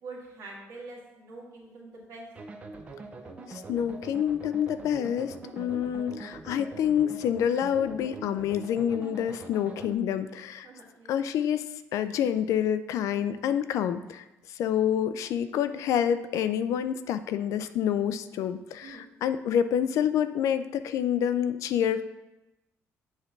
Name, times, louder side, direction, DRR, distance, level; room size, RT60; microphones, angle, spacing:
voice 1, 0.0-2.3 10.6-11.2 18.8-19.0, right 3 dB, 60° right, -3 dB, 2.0 m, -45 dB
sound 1, 2.3-9.9, right 3 dB, 25° right, 0.6 m, -43 dB
voice 2, 3.5-10.7 11.1-22.0, left 9 dB, 75° left, 11 dB, 0.4 m, -28 dB
8.1 x 3.3 x 5.8 m, 0.99 s
cardioid pair, 155°, 6 cm